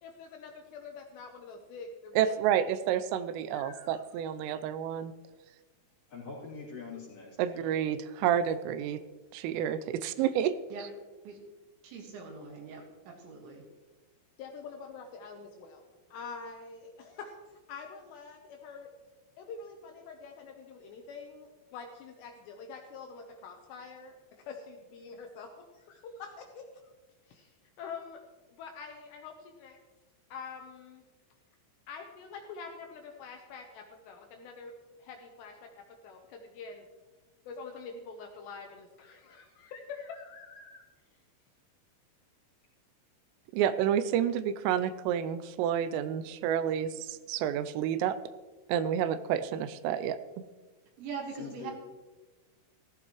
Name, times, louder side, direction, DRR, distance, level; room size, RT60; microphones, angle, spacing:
voice 1, 0.0-2.3 3.5-4.0 8.3-8.4 14.4-18.9 19.4-26.9 27.3-27.5 27.8-28.2 28.5-29.8 30.3-31.0 31.9-34.7 35.0-36.8 37.5-40.8, left 5 dB, 75° left, 3 dB, 2.6 m, -46 dB
voice 2, 2.2-5.1 7.4-9.0 9.3-10.5 10.8-10.9 43.5-48.2 48.7-50.2, right 9 dB, 85° right, 13 dB, 3.2 m, -29 dB
voice 3, 6.1-7.7 51.3-51.7, left 5 dB, 40° left, -5 dB, 3.5 m, -44 dB
voice 4, 11.8-13.6 51.0-51.7, right 5 dB, 70° right, 1 dB, 3.8 m, -42 dB
14.5 x 14.5 x 3.1 m, 1.2 s
omnidirectional pair, 5.7 m